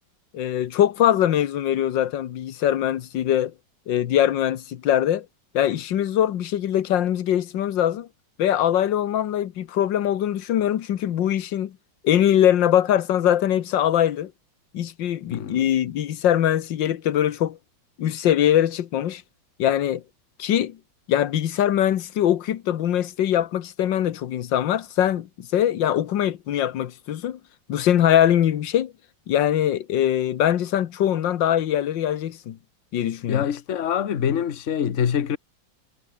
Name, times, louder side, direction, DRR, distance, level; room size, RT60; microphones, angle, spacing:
voice 1, 0.3-3.5 3.9-5.2 5.5-8.1 8.4-11.7 12.0-14.3 14.7-17.6 18.0-19.2 19.6-20.0 20.4-20.8 21.1-27.4 27.7-28.9 29.3-32.6 32.9-33.5, left 11 dB, 80° left, 1.7 m, -22 dB
voice 2, 15.3-15.7 33.3-35.4, left 8 dB, 45° left, 1.4 m, -25 dB
omnidirectional pair, 2.0 m